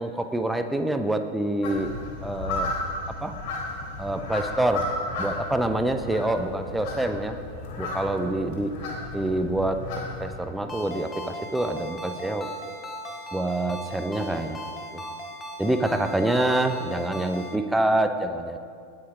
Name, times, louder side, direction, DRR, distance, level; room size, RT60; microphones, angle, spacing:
voice 1, 0.0-1.9 2.2-2.7 3.1-3.3 4.0-4.9 5.2-7.4 7.8-8.8 9.1-12.5 13.3-14.6 14.9-15.0 15.6-18.6, right 1 dB, 5° right, 8 dB, 0.8 m, -26 dB
sound 1, 1.6-10.4, left 2 dB, 45° left, 3.8 m, -34 dB
Ringtone, 10.7-17.6, equal, 15° left, 1.5 m, -38 dB
19.5 x 7.8 x 5.0 m, 2.3 s
figure-of-eight pair, 90°, 0 cm